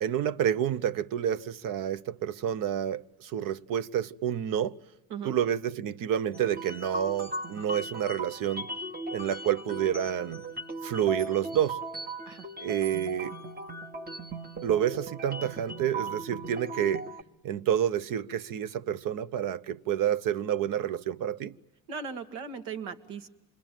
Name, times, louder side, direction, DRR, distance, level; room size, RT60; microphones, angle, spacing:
voice 1, 0.0-4.8 5.2-8.7 9.1-10.4 10.8-11.8 12.6-13.4 14.6-17.0 17.4-21.6, right 10 dB, 50° right, 0.9 m, -29 dB
sound 1, 6.3-17.2, right 2 dB, 25° right, 1.4 m, -38 dB
voice 2, 21.9-23.3, right 5 dB, 75° right, 2.0 m, -38 dB
27.0 x 21.5 x 9.2 m
hypercardioid pair, 75°, 41 cm